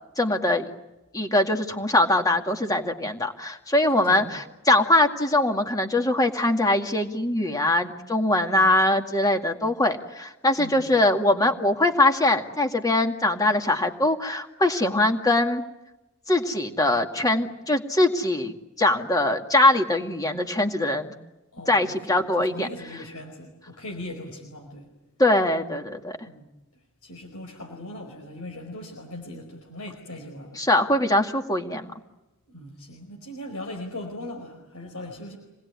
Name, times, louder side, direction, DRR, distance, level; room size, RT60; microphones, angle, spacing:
voice 1, 0.2-0.7 1.1-15.6 16.3-21.1 21.7-22.7 25.2-26.2 30.6-31.9, left 1 dB, 15° left, 4 dB, 2.1 m, -22 dB
voice 2, 3.8-4.3 10.5-11.0 21.5-24.9 26.2-26.5 27.0-30.6 32.5-35.4, left 1 dB, 85° left, 1 dB, 4.9 m, -39 dB
27.0 x 20.0 x 9.7 m, 0.99 s
head